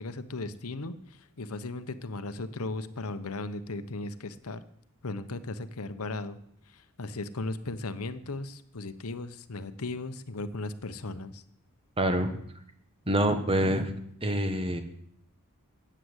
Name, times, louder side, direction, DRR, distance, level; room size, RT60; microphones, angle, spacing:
voice 1, 0.0-4.6 5.0-6.4 6.7-11.4, left 2 dB, 75° left, 12 dB, 1.0 m, -37 dB
voice 2, 12.0-12.3 13.1-13.9 14.2-14.8, right 1 dB, 25° right, 8 dB, 1.5 m, -26 dB
14.5 x 8.9 x 8.1 m, 0.70 s
head